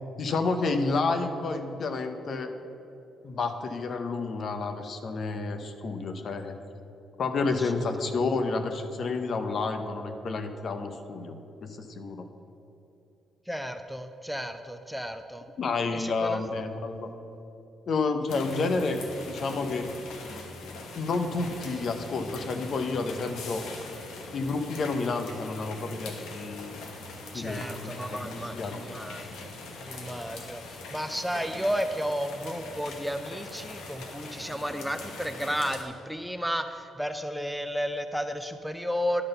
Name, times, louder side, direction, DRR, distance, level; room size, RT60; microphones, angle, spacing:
voice 1, 0.2-2.5 3.2-6.6 7.2-11.3 11.6-12.3 15.6-17.1 17.9-19.0 19.3-19.9 20.9-23.6 24.3-26.8 27.3-28.8, left 3 dB, 55° left, 7 dB, 0.7 m, -30 dB
voice 2, 13.5-15.5 15.9-16.4 27.3-29.5 29.8-39.2, equal, ahead, 8 dB, 0.4 m, -33 dB
sound 1, 18.3-35.8, left 3 dB, 85° left, 1.1 m, -42 dB
11.0 x 3.9 x 6.6 m, 2.9 s
cardioid pair, 90°, 0 cm